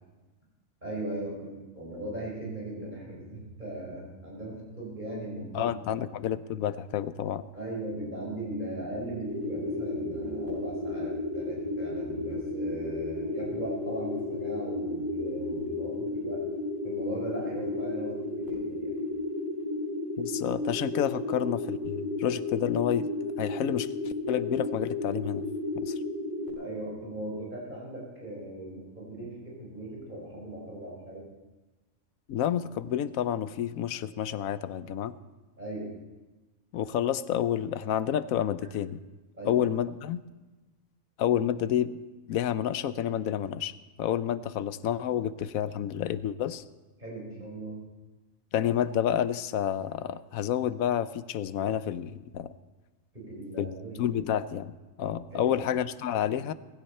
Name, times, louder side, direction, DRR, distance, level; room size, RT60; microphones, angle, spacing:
voice 1, 0.8-6.0 7.5-16.4 16.8-18.9 26.6-31.2 35.6-35.9 39.4-39.6 47.0-47.8 53.1-54.2 55.3-55.6, right 1 dB, 35° right, -4 dB, 4.9 m, -38 dB
voice 2, 5.5-7.5 20.2-23.1 23.4-25.4 25.7-25.9 32.3-35.1 36.7-39.0 39.5-40.2 41.2-42.0 42.3-43.7 44.0-46.6 48.5-52.5 53.6-53.7 54.0-56.5, left 10 dB, 90° left, 14 dB, 1.1 m, -29 dB
sound 1, 9.2-26.5, left 2 dB, 30° left, 7.2 m, -33 dB
19.5 x 15.5 x 4.4 m, 1.2 s
omnidirectional pair, 1.4 m